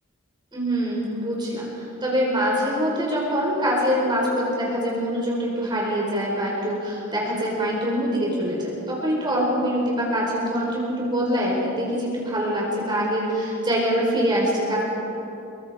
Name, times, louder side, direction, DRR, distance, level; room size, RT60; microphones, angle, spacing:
voice 1, 0.5-14.8, equal, 20° right, -4 dB, 4.6 m, -24 dB
26.5 x 23.0 x 4.9 m, 2.9 s
head